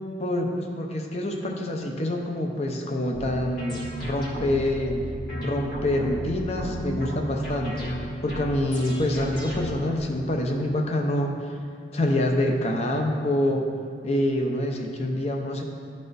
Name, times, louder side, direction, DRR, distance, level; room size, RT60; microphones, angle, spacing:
voice 1, 0.2-5.0 5.3-11.6 11.9-13.6 14.0-15.6, left 1 dB, 35° left, 2 dB, 0.6 m, -26 dB
sound 1, 3.1-10.0, equal, 50° left, 1.6 m, -34 dB
12.0 x 4.2 x 2.6 m, 2.3 s
head